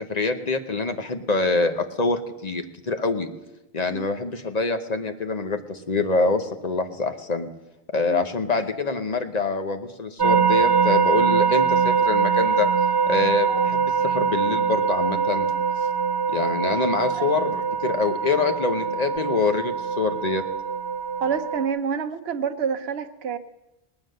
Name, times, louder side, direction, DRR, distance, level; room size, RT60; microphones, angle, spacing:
voice 1, 0.0-3.3 3.7-7.5 7.9-12.7 13.1-15.5 16.3-20.4, left 3 dB, 40° left, 7 dB, 1.0 m, -25 dB
sound 1, 10.2-21.7, right 6 dB, 30° right, 0.6 m, -23 dB
voice 2, 21.2-23.4, right 6 dB, 70° right, 7 dB, 1.0 m, -28 dB
19.0 x 9.3 x 6.6 m, 0.98 s
omnidirectional pair, 1.1 m